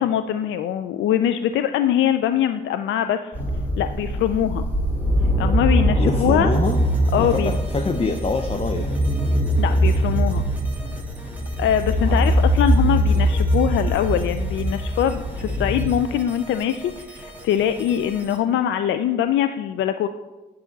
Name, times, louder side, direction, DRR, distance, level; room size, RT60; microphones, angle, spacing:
voice 1, 0.0-3.3 3.8-4.7 5.4-6.5 7.1-7.6 9.6-10.4 11.6-20.1, left 10 dB, 75° left, 10 dB, 0.4 m, -22 dB
sound 1, 3.3-15.9, equal, 10° left, 3.1 m, -22 dB
voice 2, 6.0-6.8 7.2-9.0 12.0-12.4, left 4 dB, 30° left, 6 dB, 0.7 m, -25 dB
sound 2, 6.5-18.4, right 1 dB, 10° right, 1.6 m, -42 dB
9.4 x 7.0 x 4.0 m, 1.1 s
cardioid pair, 90°, 20 cm